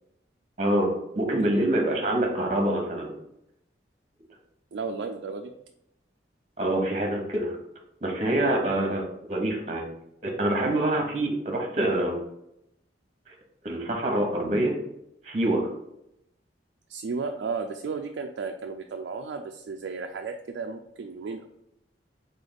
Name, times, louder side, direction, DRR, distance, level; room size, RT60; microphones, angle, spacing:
voice 1, 0.6-0.9 1.1-3.1 6.6-7.5 8.0-9.9 10.2-12.2 13.3-13.4 13.6-14.7 15.2-15.7, right 1 dB, 40° right, 2 dB, 1.0 m, -25 dB
voice 2, 1.2-1.6 4.7-5.5 8.7-9.0 16.9-21.5, right 4 dB, 80° right, 3 dB, 0.4 m, -34 dB
3.9 x 3.4 x 3.9 m, 0.81 s
head